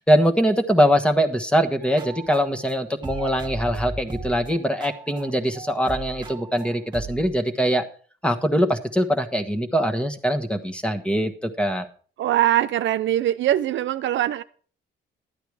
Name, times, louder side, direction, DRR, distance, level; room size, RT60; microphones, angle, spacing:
voice 1, 0.0-7.8 8.2-11.9, equal, 5° left, 1.4 m, -22 dB
sound 1, 1.8-2.7 3.0-7.4, right 4 dB, 20° right, 1.6 m, -37 dB
voice 2, 12.2-14.4, right 12 dB, 70° right, 0.6 m, -22 dB
12.0 x 9.1 x 4.9 m
cardioid pair, 90°, 20 cm